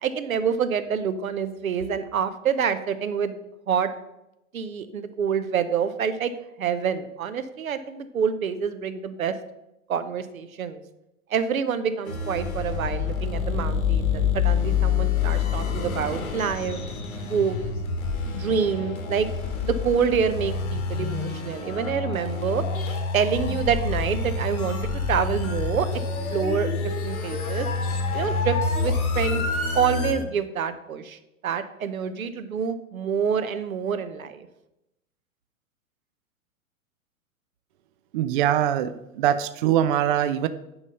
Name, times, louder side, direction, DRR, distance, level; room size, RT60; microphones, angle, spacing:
voice 1, 0.0-3.4 3.7-3.9 4.5-6.3 6.6-9.3 9.9-10.8 11.3-16.8 17.2-17.8 18.3-19.3 19.6-22.6 23.1-25.9 26.3-26.7 27.0-27.7 28.1-29.5 29.7-31.2 31.4-34.5, right 7 dB, 75° right, 11 dB, 0.9 m, -27 dB
sound 1, 12.1-30.1, left 5 dB, 80° left, 2.0 m, -27 dB
voice 2, 38.1-40.5, right 10 dB, 40° right, 13 dB, 0.4 m, -23 dB
9.8 x 4.0 x 5.5 m, 0.90 s
figure-of-eight pair, 105°, 42 cm